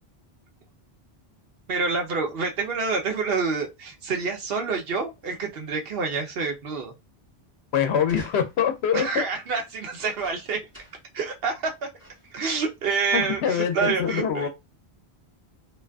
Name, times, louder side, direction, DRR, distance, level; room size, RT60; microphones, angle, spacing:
voice 1, 1.7-6.9 8.9-10.6 11.1-11.7 12.3-14.5, right 4 dB, 70° right, 0.9 m, -27 dB
voice 2, 7.7-9.2 13.1-14.5, left 8 dB, 80° left, 0.8 m, -24 dB
sound 1, 8.0-8.8 9.9-11.1 11.5-11.6 12.0-12.4 13.2-13.3, equal, 15° right, 1.3 m, -49 dB
2.5 x 2.4 x 2.3 m
omnidirectional pair, 1.1 m